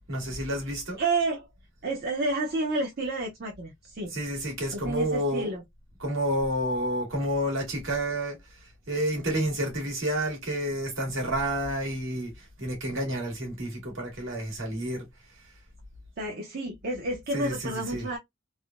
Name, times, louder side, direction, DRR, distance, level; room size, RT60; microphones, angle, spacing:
voice 1, 0.1-1.0 4.1-5.5 6.0-8.4 8.9-12.3 12.6-15.1 17.3-18.1, right 1 dB, 75° right, 1.6 m, -29 dB
voice 2, 1.0-1.5 1.8-4.1 4.7-5.6 16.2-18.2, right 2 dB, 55° right, 0.7 m, -30 dB
3.4 x 2.1 x 2.4 m
head